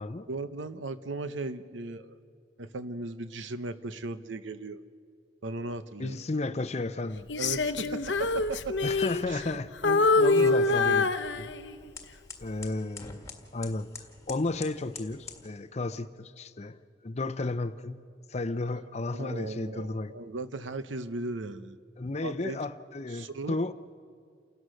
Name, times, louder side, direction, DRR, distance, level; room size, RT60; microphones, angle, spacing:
voice 1, 0.3-2.1 2.6-4.8 5.4-6.2 7.4-8.7 9.3-9.4 9.8-11.1 19.1-21.8 22.2-22.6 23.1-23.6, right 2 dB, 85° right, 12 dB, 0.9 m, -36 dB
voice 2, 6.0-7.3 8.8-9.7 10.2-11.1 11.4-11.5 12.4-13.2 13.5-13.9 14.3-16.8 17.0-18.0 18.3-20.1 22.0-23.7, left 2 dB, 35° left, 12 dB, 0.6 m, -33 dB
Female singing, 7.3-9.6 9.8-11.9 12.4-12.7, left 3 dB, 70° left, 0.8 m, -25 dB
sound 1, 8.7-15.5, left 4 dB, 15° left, 1.7 m, -49 dB
29.0 x 17.5 x 6.5 m, 2.1 s
head